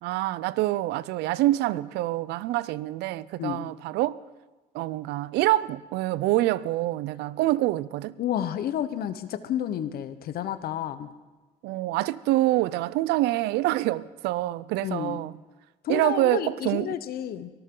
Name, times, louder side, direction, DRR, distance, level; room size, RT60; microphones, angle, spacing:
voice 1, 0.0-4.2 4.7-8.1 11.6-15.3 15.9-16.9, right 16 dB, 85° right, 0.5 m, -26 dB
voice 2, 3.4-3.7 8.2-11.1 14.8-15.2 15.8-17.5, left 10 dB, 65° left, 1.0 m, -30 dB
24.0 x 13.0 x 3.8 m
cardioid pair, 110°, 17 cm